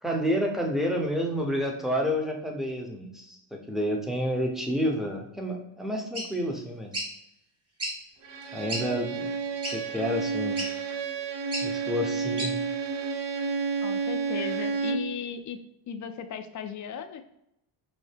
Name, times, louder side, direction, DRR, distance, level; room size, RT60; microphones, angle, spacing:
voice 1, 0.0-7.1 8.5-9.2 9.7-10.6 11.6-12.5, equal, ahead, 1 dB, 0.7 m, -29 dB
sound 1, 6.1-6.3 6.9-7.1 7.8-8.0 8.4-8.5 8.7-8.8 9.6-9.8 10.6-10.7 11.5-11.7 12.4-12.5, right 1 dB, 30° right, 1.2 m, -32 dB
Bowed string instrument, 8.2-15.2, right 5 dB, 60° right, 0.6 m, -30 dB
voice 2, 13.8-15.6 15.9-17.2, left 8 dB, 40° left, 8 dB, 0.4 m, -36 dB
5.4 x 2.1 x 3.3 m, 0.81 s
supercardioid pair, 80°, 50 cm